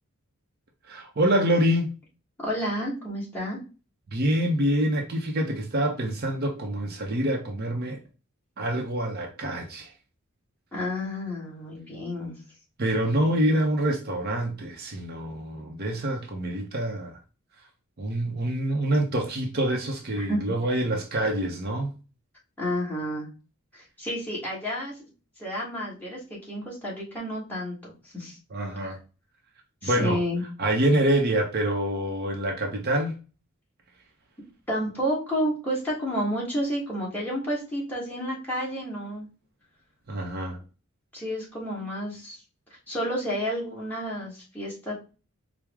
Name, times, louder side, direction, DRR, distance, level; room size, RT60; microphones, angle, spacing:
voice 1, 0.9-1.9 4.1-8.0 8.6-9.9 12.8-17.2 18.0-21.9 28.5-29.0 29.8-30.2 30.6-33.1 40.1-40.6, right 1 dB, 45° right, 0.6 m, -26 dB
voice 2, 2.4-3.6 10.7-12.3 20.1-20.4 22.6-23.3 23.7-25.1 25.4-28.4 28.8-29.0 29.8-30.4 34.7-39.3 41.1-42.4 42.9-44.9, equal, 10° left, 1.3 m, -30 dB
4.7 x 2.0 x 3.4 m
head